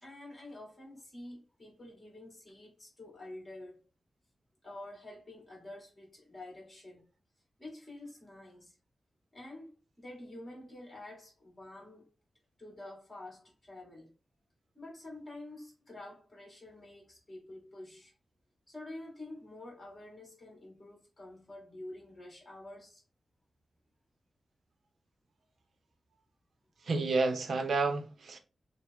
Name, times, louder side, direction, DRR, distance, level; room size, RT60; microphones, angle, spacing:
voice 1, 0.0-3.8 4.6-7.1 7.6-8.8 9.3-9.7 10.0-12.1 12.6-14.1 14.7-18.1 18.7-23.0, left 1 dB, 20° left, 2.1 m, -48 dB
voice 2, 26.8-28.4, right 3 dB, 65° right, 0.7 m, -30 dB
6.1 x 2.2 x 3.5 m
wide cardioid pair, 180°, 0 cm